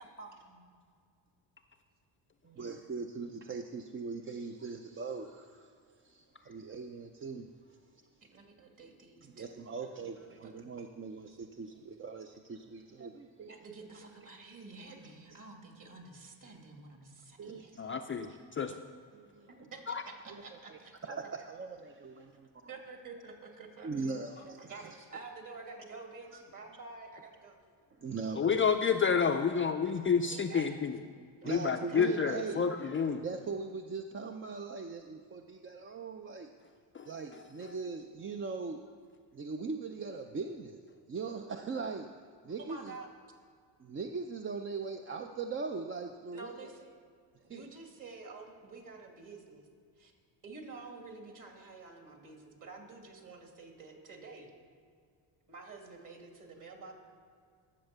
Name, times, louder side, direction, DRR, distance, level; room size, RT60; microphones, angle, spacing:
voice 1, 0.0-0.7 2.4-2.9 8.2-10.5 13.5-18.0 19.5-20.9 22.7-24.3 24.6-27.6 30.3-30.8 31.4-31.5 31.9-32.2 42.6-43.1 46.3-47.0 47.4-49.7 50.0-50.1 50.4-54.5 55.5-56.9, right 4 dB, 45° right, 2 dB, 2.5 m, -49 dB
voice 2, 2.6-5.7 6.0-7.5 9.2-13.5 15.3-15.4 17.4-17.8 18.2-18.4 19.1-19.6 20.3-20.4 20.7-22.7 23.8-24.8 26.3-26.4 28.0-28.6 31.4-32.6 33.2-36.5 37.0-38.8 39.3-40.8 41.1-42.1 42.4-43.0 43.8-46.5 47.5-47.6, right 4 dB, 30° right, 5 dB, 0.5 m, -40 dB
voice 3, 17.8-18.3 18.6-18.7 19.9-20.0 28.3-31.0 31.4-33.2 36.9-37.1, left 6 dB, 25° left, 5 dB, 0.4 m, -29 dB
11.5 x 7.2 x 6.7 m, 2.1 s
cardioid pair, 100°, 47 cm